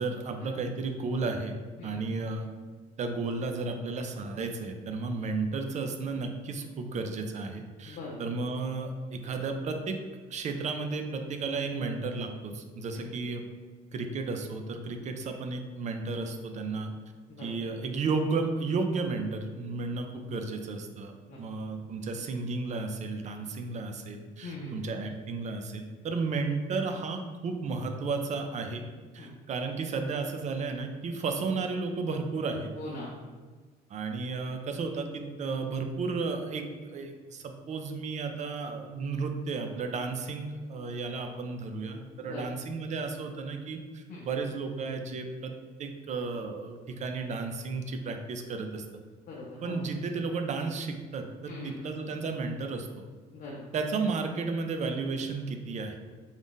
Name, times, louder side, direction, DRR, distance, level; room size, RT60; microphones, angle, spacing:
voice 1, 0.0-1.5 1.8-2.5 3.0-10.0 10.3-13.4 13.9-16.9 17.4-28.8 29.1-32.7 33.9-45.5 45.8-48.8 49.6-52.9 53.7-56.0, right 4 dB, 45° right, 5 dB, 0.5 m, -33 dB
voice 2, 7.9-8.2 12.9-13.1 17.3-17.5 21.3-21.4 24.4-24.9 29.2-29.3 32.8-33.1 42.2-42.4 44.1-44.2 49.3-49.8 51.5-51.8 53.3-53.6, left 2 dB, 55° left, -4 dB, 0.7 m, -41 dB
3.9 x 2.4 x 3.6 m, 1.4 s
cardioid pair, 110°, 17 cm